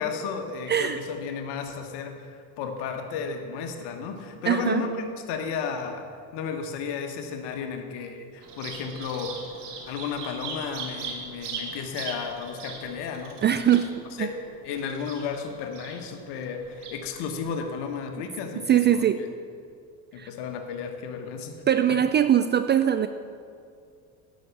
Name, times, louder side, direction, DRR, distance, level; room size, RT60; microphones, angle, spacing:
voice 1, 0.0-6.1 6.3-9.4 9.9-13.7 14.2-14.3 14.6-19.3 20.1-21.5 21.9-22.0, left 6 dB, 60° left, 5 dB, 1.5 m, -33 dB
voice 2, 0.7-1.0 4.5-4.8 13.4-13.9 14.2-14.3 18.7-19.2 20.2-20.3 21.7-23.1, right 10 dB, 25° right, 10 dB, 0.3 m, -21 dB
Bird vocalization bird call bird song, 8.4-17.4, right 4 dB, 90° right, 1.7 m, -40 dB
11.0 x 6.4 x 6.8 m, 2.4 s
hypercardioid pair, 75°, 45 cm